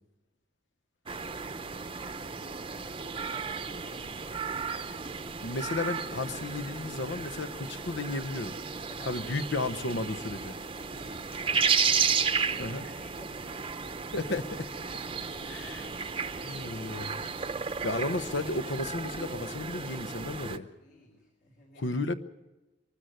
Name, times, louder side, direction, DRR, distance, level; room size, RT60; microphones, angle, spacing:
sound 1, 1.1-20.6, right 6 dB, 30° right, 0.7 m, -33 dB
voice 1, 1.3-4.4 4.7-4.9 8.9-9.6 10.8-11.8 12.4-13.7 15.2-17.6 20.8-21.9, left 1 dB, 60° left, -2 dB, 3.8 m, -54 dB
voice 2, 5.4-8.5 9.1-10.5 12.6-12.8 14.1-14.7 15.5-15.8 16.5-17.2 17.8-20.7 21.8-22.1, left 2 dB, 80° left, 11 dB, 1.0 m, -33 dB
23.0 x 13.0 x 9.2 m, 1.1 s
head